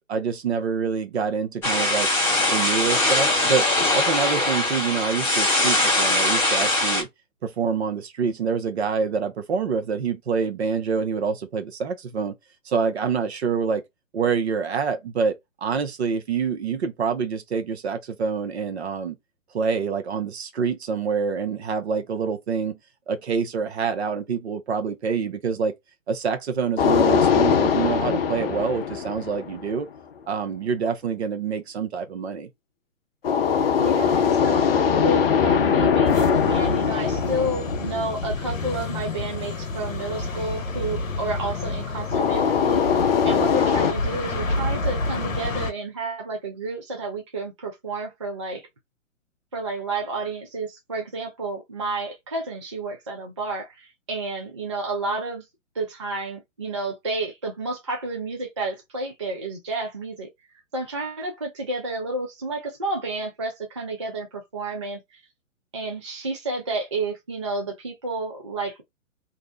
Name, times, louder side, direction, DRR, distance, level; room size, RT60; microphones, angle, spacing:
voice 1, 0.1-2.1 2.5-7.1 7.4-12.4 12.7-13.8 14.1-19.2 19.5-22.8 23.1-25.7 26.1-29.9 30.3-32.5, right 6 dB, 55° right, 0.7 m, -26 dB
sound 1, 1.6-7.0, left 2 dB, 5° left, 0.9 m, -21 dB
sound 2, 26.8-29.8 33.2-38.6 42.1-43.9, left 7 dB, 50° left, 0.5 m, -21 dB
voice 2, 33.8-43.0 43.2-48.7 49.5-55.4 55.8-60.3 60.7-65.2 65.7-68.8, right 2 dB, 25° right, 0.3 m, -30 dB
sound 3, 36.0-45.7, left 2 dB, 85° left, 0.8 m, -29 dB
2.6 x 2.0 x 3.6 m
figure-of-eight pair, 130°, 39 cm